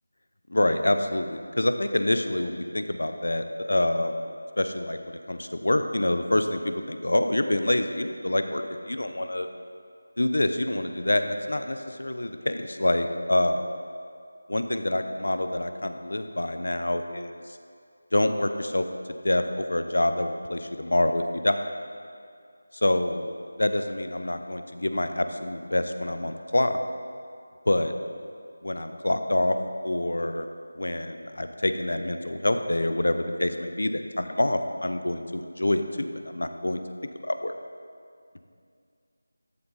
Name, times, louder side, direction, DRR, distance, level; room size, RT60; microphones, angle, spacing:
voice 1, 0.5-4.3 4.6-5.0 5.3-9.5 10.2-13.7 14.5-17.4 18.1-18.8 19.2-21.6 22.8-23.3 23.6-26.8 27.7-27.9 28.6-29.6 29.8-30.5 30.7-36.8 37.2-37.5, left 1 dB, 85° left, 8 dB, 0.8 m, -26 dB
13.5 x 7.8 x 4.2 m, 2.3 s
figure-of-eight pair, 175°, 0 cm